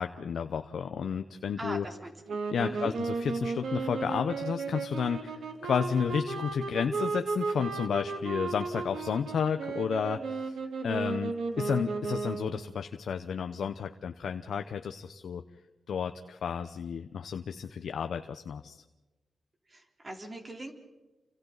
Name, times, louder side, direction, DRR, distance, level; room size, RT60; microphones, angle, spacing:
voice 1, 0.0-1.8 2.5-10.5 10.8-15.4 15.9-18.8, left 7 dB, 75° left, 7 dB, 0.8 m, -32 dB
voice 2, 1.6-2.4 2.7-2.9 19.7-20.7, right 1 dB, 30° right, 2 dB, 3.7 m, -41 dB
sound 1, 2.3-12.7, right 4 dB, 80° right, 2.4 m, -34 dB
30.0 x 25.5 x 4.0 m, 1.1 s
wide cardioid pair, 105°, 0 cm